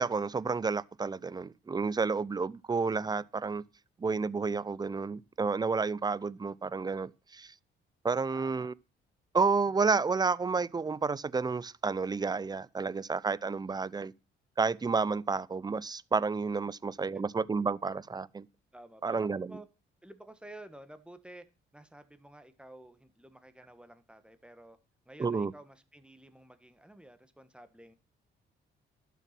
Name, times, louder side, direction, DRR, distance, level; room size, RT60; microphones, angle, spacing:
voice 1, 0.0-3.6 4.0-7.5 8.0-8.7 9.3-14.1 14.6-18.5 19.0-19.5 25.2-25.5, right 4 dB, 20° right, 0.5 m, -30 dB
voice 2, 8.3-8.7 17.1-17.2 18.7-19.7 20.0-21.4 21.7-24.8 25.0-27.9, right 1 dB, 5° right, 1.7 m, -51 dB
12.0 x 7.1 x 6.0 m
cardioid pair, 90°, 20 cm